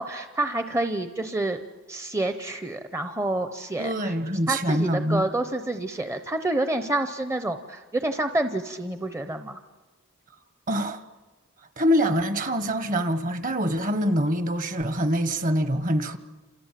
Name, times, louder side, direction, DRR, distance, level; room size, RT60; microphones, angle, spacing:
voice 1, 0.0-1.6 1.9-4.1 4.5-9.6, right 2 dB, 15° right, 0.8 m, -28 dB
voice 2, 3.8-5.3 10.7-11.0 11.8-16.2, equal, 35° right, 1.3 m, -25 dB
28.5 x 28.0 x 7.5 m
head